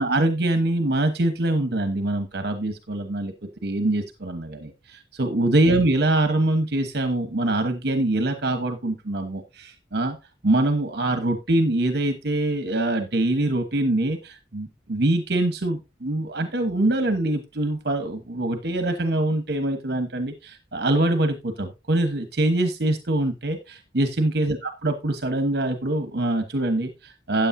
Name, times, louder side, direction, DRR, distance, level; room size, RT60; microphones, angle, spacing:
voice 1, 0.0-3.3 3.6-10.2 10.4-27.5, right 1 dB, 60° right, 7 dB, 1.2 m, -24 dB
13.5 x 9.0 x 2.7 m, 0.26 s
head